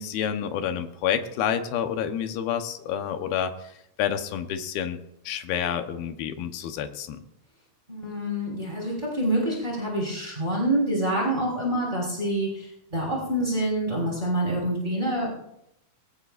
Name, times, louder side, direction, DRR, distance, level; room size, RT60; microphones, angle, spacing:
voice 1, 0.0-3.5 4.0-5.0 5.3-7.2, left 9 dB, 85° left, 7 dB, 3.0 m, -28 dB
voice 2, 7.9-15.3, right 1 dB, 10° right, -3 dB, 5.0 m, -26 dB
22.0 x 16.5 x 2.6 m, 0.81 s
omnidirectional pair, 4.3 m